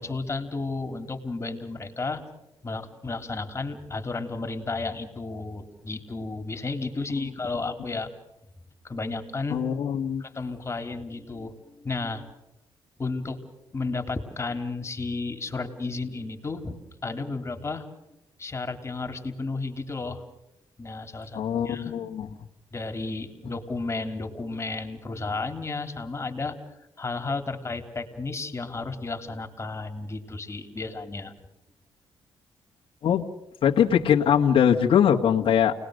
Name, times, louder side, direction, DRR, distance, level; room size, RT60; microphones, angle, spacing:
voice 1, 0.0-2.2 2.6-8.1 8.8-9.6 10.2-12.3 13.0-13.4 13.7-17.9 18.4-20.3 20.8-21.9 22.7-26.6 27.0-31.3, left 3 dB, 30° left, 6 dB, 3.5 m, -33 dB
voice 2, 9.5-10.2 21.3-22.3 33.0-33.2 33.6-35.7, left 8 dB, 65° left, 1 dB, 1.8 m, -22 dB
29.5 x 20.0 x 6.6 m, 0.88 s
cardioid pair, 85°, 10 cm